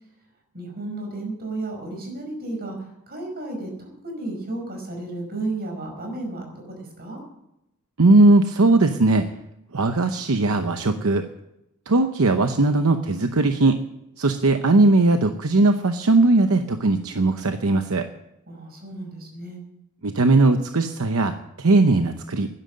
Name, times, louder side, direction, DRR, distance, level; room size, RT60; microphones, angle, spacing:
voice 1, 0.5-7.2 18.5-19.6, right 2 dB, 45° right, 2 dB, 5.1 m, -33 dB
voice 2, 8.0-9.2 9.7-11.2 11.9-13.8 14.2-18.1 20.0-22.5, right 2 dB, 70° right, 7 dB, 0.8 m, -19 dB
11.5 x 10.5 x 7.7 m, 0.85 s
head